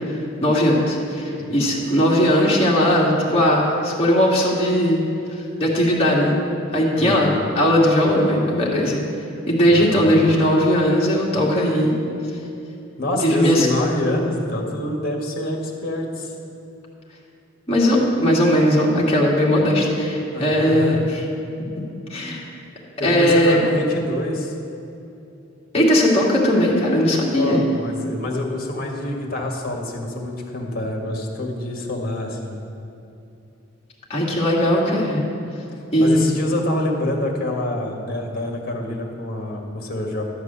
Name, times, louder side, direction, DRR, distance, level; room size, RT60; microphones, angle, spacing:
voice 1, 0.1-5.0 5.6-6.4 6.7-9.0 9.5-12.0 13.2-13.7 17.7-21.0 22.1-22.4 23.0-23.6 25.7-27.6 34.1-35.2 35.9-36.3, equal, 30° left, -4 dB, 2.0 m, -18 dB
voice 2, 7.0-7.5 9.7-10.3 13.0-16.3 20.3-21.1 23.0-24.5 27.3-32.6 36.0-40.2, left 1 dB, 50° left, 1 dB, 1.6 m, -26 dB
12.0 x 4.8 x 8.1 m, 2.7 s
head